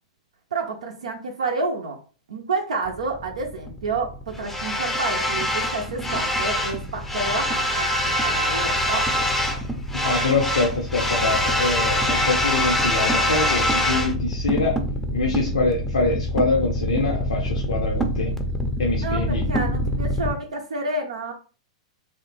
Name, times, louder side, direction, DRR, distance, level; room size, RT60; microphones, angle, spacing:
voice 1, 0.5-2.0 2.3-7.9 8.2-9.1 19.0-21.3, right 3 dB, 75° right, 2 dB, 0.5 m, -29 dB
sound 1, 2.9-20.3, left 1 dB, 5° left, 0.5 m, -24 dB
voice 2, 10.0-14.8 15.1-18.3 18.8-19.4, left 3 dB, 75° left, 0 dB, 0.6 m, -24 dB
3.1 x 2.1 x 3.2 m, 0.37 s
hypercardioid pair, 105°, 3 cm